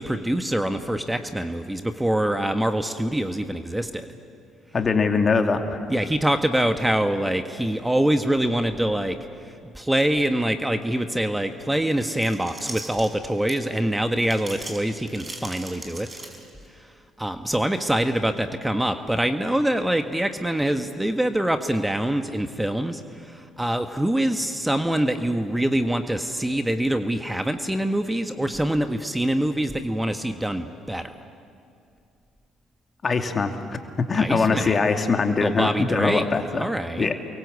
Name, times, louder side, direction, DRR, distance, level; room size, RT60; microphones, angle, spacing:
voice 1, 0.0-4.1 5.9-9.2 9.7-16.1 17.2-31.2 34.1-34.8 35.4-36.2 36.5-37.1, right 1 dB, 10° right, 7 dB, 1.6 m, -24 dB
voice 2, 4.7-5.8 33.0-33.5 34.1-36.7 37.0-37.1, left 4 dB, 40° left, 5 dB, 2.7 m, -22 dB
sound 1, 11.8-13.8 14.2-16.7, right 2 dB, 25° right, 5.9 m, -39 dB
29.0 x 23.5 x 8.5 m, 2.5 s
hypercardioid pair, 50°, 0 cm